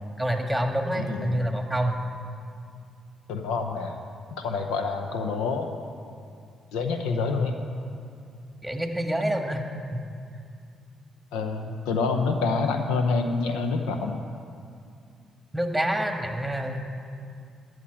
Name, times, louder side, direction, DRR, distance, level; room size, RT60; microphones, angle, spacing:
voice 1, 0.2-2.0 8.6-9.6 9.9-10.0 15.5-16.8, right 1 dB, 5° right, 4 dB, 1.7 m, -27 dB
voice 2, 0.9-1.4 3.3-4.0 4.4-5.7 6.7-7.6 11.3-14.2, left 4 dB, 80° left, 5 dB, 0.8 m, -27 dB
12.5 x 6.6 x 8.8 m, 2.3 s
hypercardioid pair, 45°, 0 cm